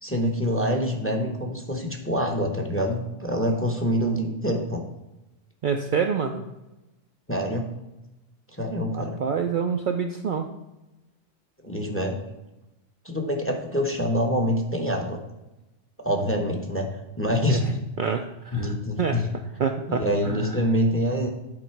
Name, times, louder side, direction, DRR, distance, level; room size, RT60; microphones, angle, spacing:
voice 1, 0.0-4.8 7.3-7.7 8.6-9.2 11.6-12.2 13.0-15.2 16.0-17.8 18.5-19.3 19.9-21.3, equal, 15° left, 2 dB, 0.8 m, -26 dB
voice 2, 5.6-6.4 8.9-10.5 17.5-17.6 18.0-19.2 19.6-20.6, right 6 dB, 60° right, 4 dB, 0.6 m, -27 dB
9.8 x 4.0 x 4.6 m, 0.99 s
omnidirectional pair, 1.2 m